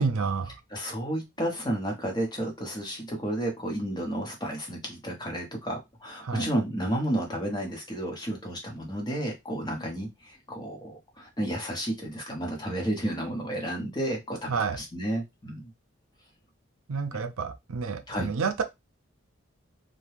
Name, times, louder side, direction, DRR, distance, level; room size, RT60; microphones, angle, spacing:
voice 1, 0.0-0.5 6.2-6.5 14.5-14.8 16.9-18.6, right 5 dB, 85° right, 0.5 m, -29 dB
voice 2, 0.7-15.7 18.1-18.3, right 1 dB, 20° left, 0.8 m, -32 dB
2.8 x 2.2 x 3.2 m
head